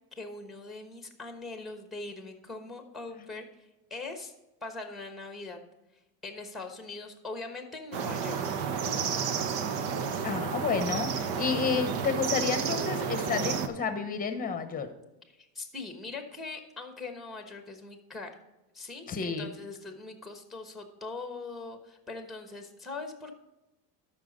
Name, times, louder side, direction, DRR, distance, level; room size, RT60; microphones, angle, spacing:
voice 1, 0.2-4.3 4.6-5.6 6.2-8.4 15.3-18.3 18.7-23.4, left 3 dB, ahead, 6 dB, 1.1 m, -41 dB
sound 1, 7.9-13.7, right 6 dB, 60° right, 1.1 m, -31 dB
voice 2, 10.2-14.9 19.1-19.5, left 5 dB, 20° left, 9 dB, 0.9 m, -30 dB
13.0 x 5.8 x 4.0 m, 0.99 s
supercardioid pair, 135°, 48 cm